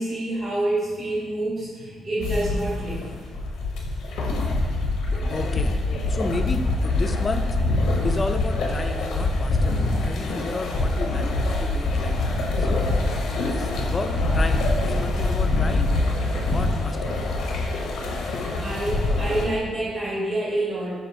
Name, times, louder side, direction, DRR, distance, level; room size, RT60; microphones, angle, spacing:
voice 1, 0.0-3.1 18.1-20.9, right 1 dB, 45° right, -7 dB, 1.4 m, -27 dB
sound 1, 2.2-19.5, left 2 dB, 80° left, 0.5 m, -24 dB
voice 2, 5.3-5.8 6.1-7.4 8.0-12.1 12.6-12.9 13.4-15.9 16.4-17.3, left 3 dB, 30° left, 7 dB, 0.3 m, -32 dB
6.1 x 2.4 x 2.6 m, 1.5 s
cardioid pair, 90°, 0 cm